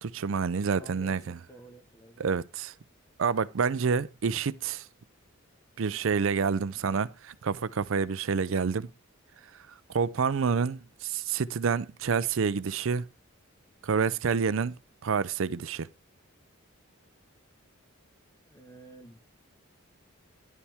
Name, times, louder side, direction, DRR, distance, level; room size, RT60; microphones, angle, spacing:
voice 1, 0.0-1.4 2.2-2.7 3.2-4.8 5.8-8.9 9.9-13.0 13.8-14.8 15.0-15.9, right 5 dB, 65° right, 0.5 m, -28 dB
voice 2, 0.7-2.2 18.4-19.2, right 1 dB, 15° left, 1.4 m, -51 dB
11.0 x 7.1 x 3.5 m
head